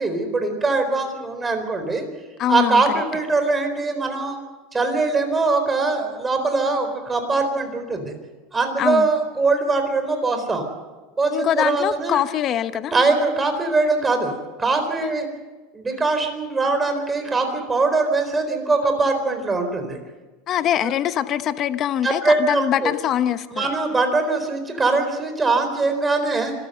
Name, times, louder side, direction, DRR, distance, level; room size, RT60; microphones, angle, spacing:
voice 1, 0.0-2.0 2.5-4.4 4.7-8.1 8.5-10.7 11.2-12.2 12.9-15.3 15.7-20.0 22.0-22.9 23.5-26.5, right 3 dB, 15° right, 6 dB, 4.1 m, -22 dB
voice 2, 2.4-2.8 8.8-9.1 11.3-12.9 15.0-15.1 20.5-23.7, left 10 dB, 40° left, 12 dB, 1.0 m, -23 dB
25.5 x 14.0 x 7.9 m, 1.3 s
supercardioid pair, 130°, 0 cm